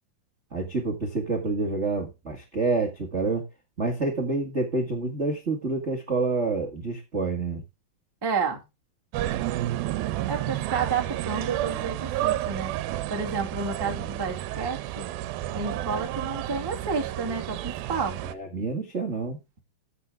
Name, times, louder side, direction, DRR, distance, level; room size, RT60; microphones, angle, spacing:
voice 1, 0.5-3.5 3.8-7.6 18.2-19.4, right 3 dB, 35° right, 1.1 m, -28 dB
voice 2, 8.2-8.6 10.2-12.7 13.1-15.1 15.5-18.2, right 5 dB, 10° right, 1.0 m, -30 dB
sound 1, 9.1-18.3, right 14 dB, 85° right, 2.6 m, -31 dB
14.5 x 6.1 x 3.6 m
omnidirectional pair, 4.2 m